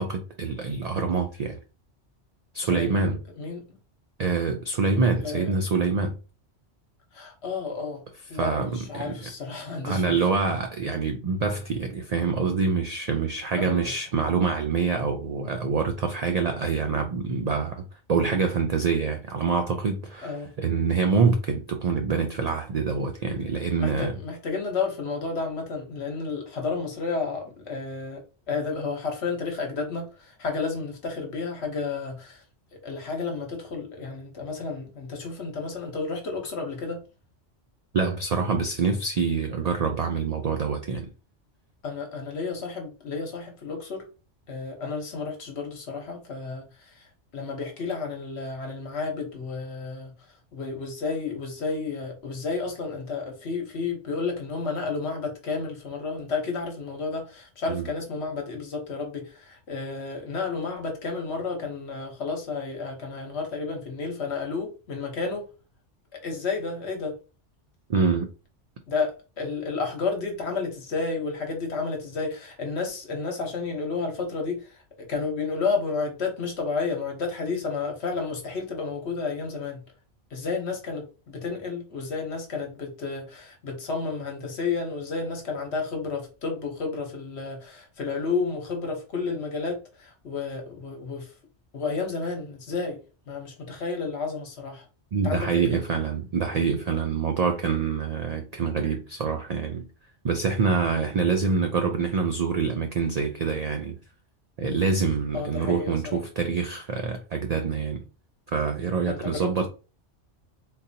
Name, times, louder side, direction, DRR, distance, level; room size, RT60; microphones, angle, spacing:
voice 1, 0.0-1.6 2.5-3.2 4.2-6.2 8.3-9.3 9.8-17.8 18.1-24.1 37.9-41.1 57.7-57.9 67.9-68.3 95.1-99.9 100.2-104.0 104.6-108.0 108.5-109.7, right 5 dB, 75° right, 0.3 m, -26 dB
voice 2, 2.6-3.8 5.2-5.5 7.1-8.0 8.3-10.1 13.5-13.9 20.2-20.5 23.7-32.4 32.7-37.0 41.8-44.0 44.5-47.1 47.3-50.1 50.5-65.5 66.1-67.2 68.9-79.8 80.3-91.3 91.7-93.0 93.3-94.8 95.2-95.5 105.3-106.2 109.1-109.7, left 4 dB, 65° left, 1.2 m, -31 dB
3.9 x 2.6 x 2.7 m
omnidirectional pair, 1.2 m